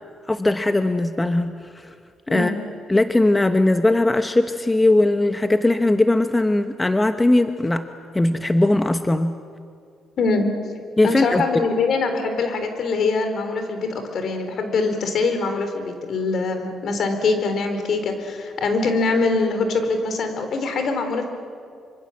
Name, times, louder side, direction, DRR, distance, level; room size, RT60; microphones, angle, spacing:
voice 1, 0.3-1.9 2.3-2.5 2.9-7.8 8.1-9.3 11.0-11.4, left 2 dB, 15° left, 8 dB, 1.0 m, -19 dB
voice 2, 10.2-10.5 11.0-21.3, left 3 dB, 60° left, 6 dB, 4.2 m, -23 dB
25.5 x 25.0 x 7.6 m, 2.3 s
cardioid pair, 90°, 0 cm